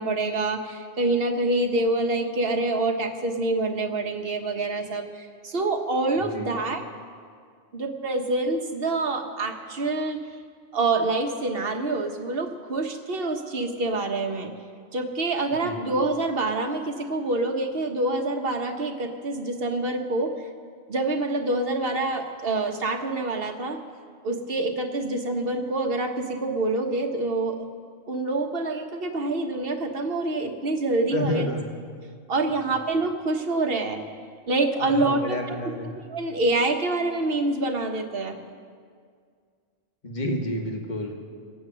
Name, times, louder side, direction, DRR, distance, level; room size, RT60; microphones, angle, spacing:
voice 1, 0.0-6.8 7.7-10.2 10.7-14.5 14.9-20.3 20.9-23.8 24.2-27.6 28.1-31.4 32.3-34.0 34.5-35.6 36.1-38.4, right 2 dB, 50° right, 4 dB, 1.4 m, -26 dB
voice 2, 31.1-31.7 34.8-35.9 40.0-41.2, left 1 dB, 40° left, 1 dB, 1.7 m, -29 dB
21.5 x 8.8 x 6.2 m, 2.1 s
omnidirectional pair, 1.3 m